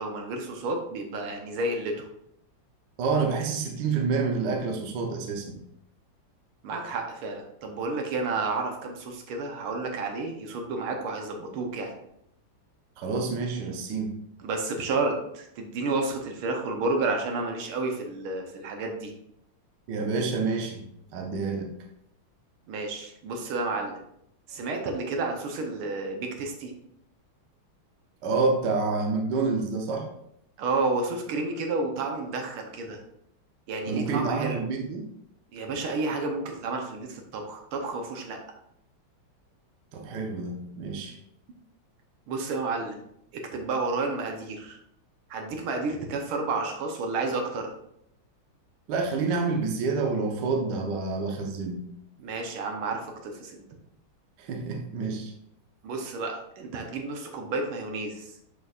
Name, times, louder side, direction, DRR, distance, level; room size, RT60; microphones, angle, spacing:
voice 1, 0.0-2.1 6.6-12.0 14.4-19.1 22.7-24.0 24.5-26.7 30.6-33.0 33.7-34.6 35.5-38.4 42.3-43.1 43.3-44.8 45.3-47.7 52.2-53.6 55.8-58.3, right 3 dB, 85° right, 3 dB, 1.8 m, -31 dB
voice 2, 3.0-5.6 13.0-14.1 19.9-20.8 21.1-21.7 28.2-30.1 33.9-35.0 39.9-41.2 48.9-51.8 54.4-55.3, right 4 dB, 65° right, 3 dB, 1.4 m, -28 dB
7.9 x 5.1 x 2.4 m, 0.76 s
omnidirectional pair, 2.3 m